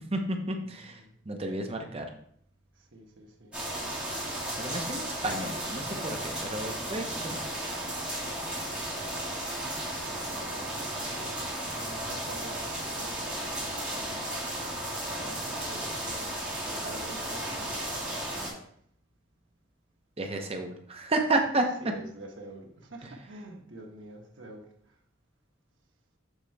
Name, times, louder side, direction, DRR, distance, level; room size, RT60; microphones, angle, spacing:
voice 1, 0.1-2.1 4.6-7.5 20.2-21.6, right 2 dB, 30° right, 4 dB, 0.8 m, -31 dB
voice 2, 0.6-1.2 2.7-3.6 8.5-9.7 10.1-14.8 15.2-18.8 21.8-25.0, right 1 dB, 70° right, 0 dB, 1.4 m, -48 dB
sound 1, 3.5-18.5, right 1 dB, 5° right, 2.5 m, -34 dB
7.1 x 3.8 x 4.5 m, 0.64 s
head